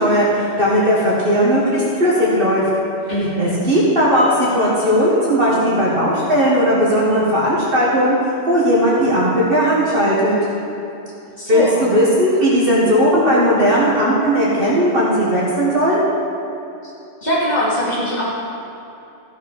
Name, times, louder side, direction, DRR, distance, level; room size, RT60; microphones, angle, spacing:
voice 1, 0.0-2.6 3.4-10.4 11.5-16.0, equal, 50° right, -6 dB, 1.9 m, -16 dB
voice 2, 3.1-3.6 11.4-11.8 16.8-16.9 17.2-18.3, equal, 35° left, -6 dB, 2.6 m, -21 dB
14.0 x 6.5 x 5.5 m, 2.9 s
omnidirectional pair, 1.2 m